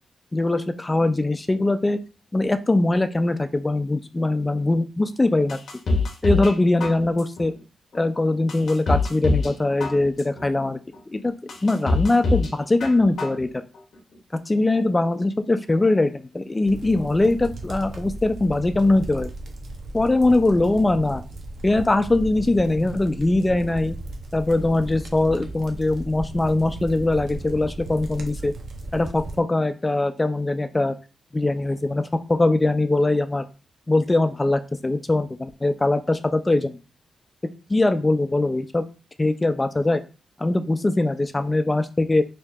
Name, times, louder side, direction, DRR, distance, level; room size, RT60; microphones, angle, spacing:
voice 1, 0.3-2.0 2.3-5.6 6.2-7.5 7.9-10.8 11.1-11.3 11.6-13.5 14.5-19.3 19.9-21.2 21.6-24.0 24.3-28.5 28.9-31.0 31.3-33.5 33.9-36.8 37.7-38.9 39.2-40.0 40.4-42.2, left 2 dB, 15° left, 10 dB, 0.3 m, -21 dB
sound 1, 5.5-6.5 6.8-7.4 7.9-8.0 8.5-9.5 9.8-10.4 10.9-11.0 11.5-12.5 12.8-13.4 13.8-13.9, left 3 dB, 55° left, 0.6 m, -24 dB
sound 2, 16.6-29.4, right 2 dB, 65° right, 0.6 m, -36 dB
4.6 x 2.6 x 2.3 m, 0.33 s
wide cardioid pair, 155°, 0 cm